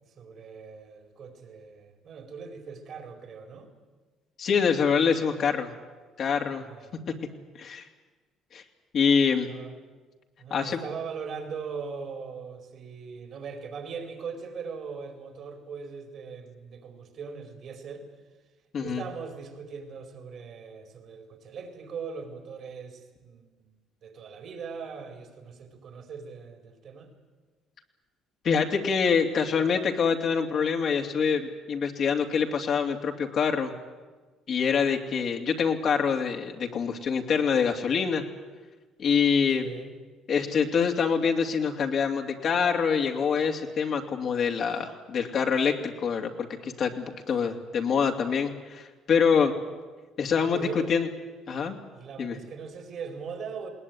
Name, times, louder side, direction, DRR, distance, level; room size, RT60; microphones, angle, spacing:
voice 1, 0.1-3.7 6.5-7.0 9.4-9.8 10.4-18.1 18.8-23.7 24.0-27.1 39.6-40.0 47.4-47.7 50.4-50.9 51.9-53.7, right 5 dB, 60° right, 4 dB, 4.8 m, -40 dB
voice 2, 4.4-5.7 6.2-6.7 7.6-7.8 8.5-8.6 8.9-9.5 10.5-10.8 18.7-19.0 28.4-33.7 34.5-38.2 39.0-39.7 40.3-48.8 49.1-49.5 50.2-51.1 51.5-51.8 52.2-52.3, left 6 dB, 55° left, 3 dB, 2.7 m, -25 dB
20.5 x 19.0 x 9.7 m, 1.3 s
supercardioid pair, 75°, 0 cm